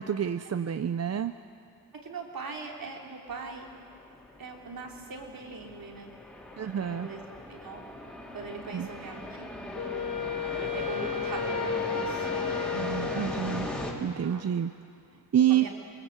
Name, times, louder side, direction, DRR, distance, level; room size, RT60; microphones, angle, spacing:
voice 1, 0.0-1.3 6.6-7.1 8.7-8.9 12.7-13.7 14.0-14.7 15.3-15.6, right 9 dB, 45° right, 11 dB, 0.6 m, -28 dB
voice 2, 1.9-3.7 4.4-6.1 6.8-7.8 8.3-9.5 10.5-12.3 14.2-14.4 15.5-15.7, right 4 dB, 60° right, 0 dB, 3.7 m, -41 dB
sound 1, 3.3-13.9, left 1 dB, 5° left, 3.9 m, -39 dB
Wind instrument woodwind instrument, 9.7-14.1, left 6 dB, 50° left, 1.8 m, -33 dB
27.5 x 21.5 x 8.1 m, 2.5 s
wide cardioid pair, 105°, 38 cm